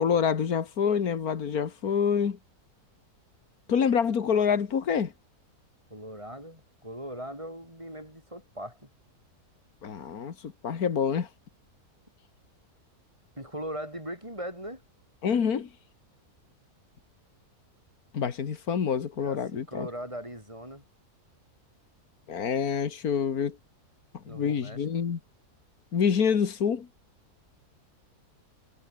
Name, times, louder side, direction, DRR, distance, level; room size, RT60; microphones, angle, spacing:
voice 1, 0.0-2.4 3.7-5.1 9.8-11.3 15.2-15.7 18.1-19.9 22.3-23.6 24.3-25.2 25.9-26.9, left 7 dB, 75° left, 2.1 m, -27 dB
voice 2, 5.9-8.9 13.4-14.8 19.1-20.8 24.3-24.8, equal, 20° right, 8.0 m, -39 dB
omnidirectional pair, 1.6 m